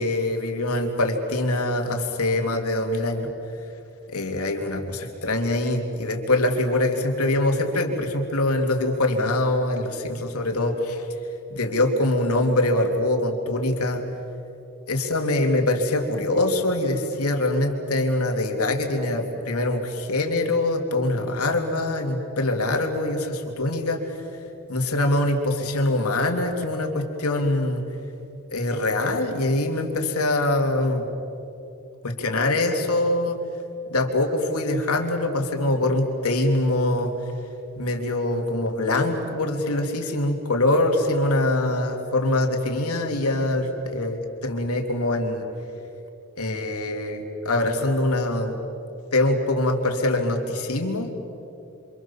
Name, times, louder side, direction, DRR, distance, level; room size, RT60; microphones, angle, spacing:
voice 1, 0.0-3.3 4.1-11.0 11.5-14.0 14.9-24.2 24.7-27.8 28.5-31.0 32.0-33.4 33.9-37.1 37.8-45.5 46.4-48.6 49.1-51.1, left 2 dB, 85° left, 3 dB, 3.2 m, -24 dB
28.0 x 27.0 x 7.3 m, 2.7 s
head